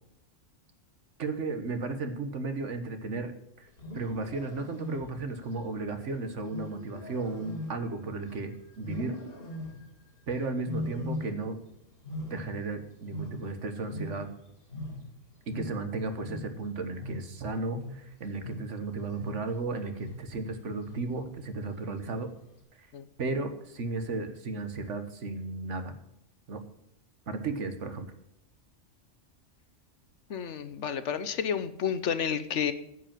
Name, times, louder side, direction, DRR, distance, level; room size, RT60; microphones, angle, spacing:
voice 1, 1.2-3.3 3.6-3.7 3.9-8.5 8.8-9.2 10.3-11.6 12.3-14.3 15.5-22.3 23.2-25.9 26.5-26.6 27.3-28.1, right 3 dB, 70° right, 8 dB, 1.6 m, -34 dB
Wild animals, 3.7-5.4 6.5-8.4 8.8-10.0 10.6-11.7 11.9-14.4 14.7-19.6 20.0-20.4 20.9-21.3 22.0-22.5, left 1 dB, 50° left, 2.6 m, -40 dB
voice 2, 30.3-32.7, left 7 dB, 70° left, 12 dB, 1.1 m, -30 dB
9.8 x 7.8 x 7.4 m, 0.80 s
omnidirectional pair, 1.3 m